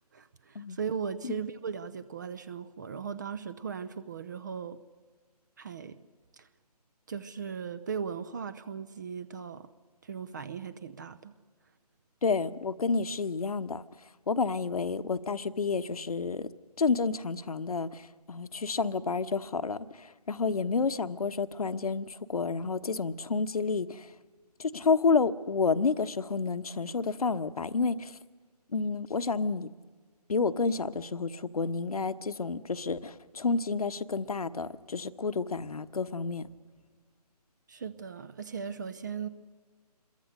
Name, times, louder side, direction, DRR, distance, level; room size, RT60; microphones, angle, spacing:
voice 1, 0.0-4.8 5.6-6.0 6.3-6.5 7.1-9.7 10.0-11.3 37.7-39.3, right 6 dB, 30° right, 15 dB, 0.7 m, -38 dB
voice 2, 12.2-13.8 14.3-16.5 16.8-24.1 24.6-28.2 28.7-29.7 30.3-36.5, left 4 dB, 65° left, 12 dB, 1.1 m, -30 dB
27.5 x 22.0 x 6.6 m, 1.4 s
figure-of-eight pair, 150°, 21 cm